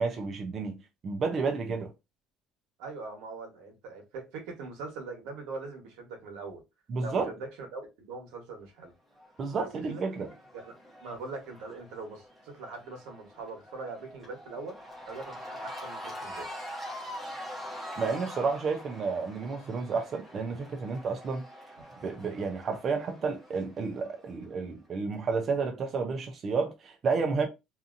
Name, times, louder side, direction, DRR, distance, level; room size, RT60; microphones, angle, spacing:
voice 1, 0.0-1.9 6.9-7.3 9.4-10.3 18.0-21.4 22.0-27.5, right 4 dB, 35° right, 0.5 m, -31 dB
voice 2, 2.8-6.6 7.0-8.9 9.5-10.0 10.5-14.8 15.1-16.5, right 3 dB, 90° right, 1.1 m, -42 dB
Cheering / Crowd, 9.1-24.4, equal, 5° right, 1.0 m, -44 dB
2.7 x 2.5 x 2.5 m
cardioid pair, 150°, 0 cm